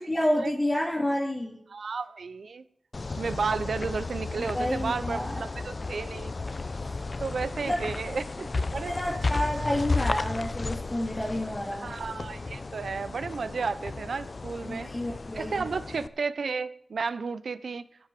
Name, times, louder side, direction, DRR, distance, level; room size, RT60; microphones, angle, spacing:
voice 1, 0.1-1.6 4.4-5.4 6.9-7.0 7.6-7.8 8.9-11.9 14.6-15.7, left 1 dB, 25° left, -4 dB, 2.6 m, -29 dB
voice 2, 1.7-2.6 3.1-6.3 7.2-9.0 11.8-14.9 15.3-17.9, right 4 dB, 90° right, 14 dB, 0.7 m, -33 dB
sound 1, 2.9-16.1, left 3 dB, 55° left, 0.6 m, -34 dB
11.5 x 9.2 x 6.1 m, 0.71 s
wide cardioid pair, 60°, 0 cm